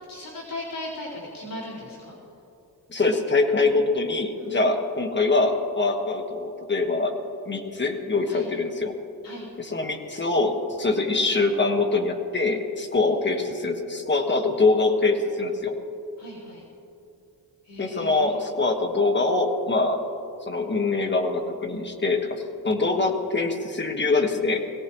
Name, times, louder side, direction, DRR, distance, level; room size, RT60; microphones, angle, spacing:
voice 1, 0.1-2.2 4.4-4.6 8.3-8.5 9.2-9.5 16.2-16.6 17.6-18.4, left 1 dB, 65° left, -7 dB, 4.1 m, -37 dB
voice 2, 2.9-7.1 7.4-8.9 9.6-15.7 17.8-20.0 20.5-24.6, left 3 dB, 30° left, 3 dB, 1.5 m, -24 dB
21.5 x 17.5 x 3.1 m, 2.8 s
wide cardioid pair, 115°, 37 cm